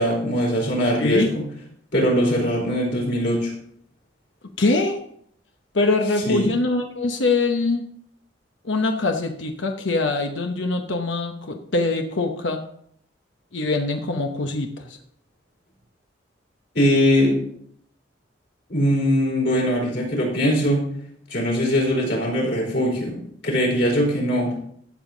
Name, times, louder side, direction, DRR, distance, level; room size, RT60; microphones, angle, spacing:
voice 1, 0.0-1.4 1.9-3.5 6.3-6.5 16.7-17.5 18.7-20.9 21.3-24.5, equal, 55° left, -2 dB, 4.2 m, -21 dB
voice 2, 1.0-1.3 4.6-5.0 5.7-7.9 8.6-12.6 13.5-15.0, left 3 dB, 75° left, 4 dB, 0.9 m, -23 dB
13.0 x 7.3 x 3.9 m, 0.66 s
head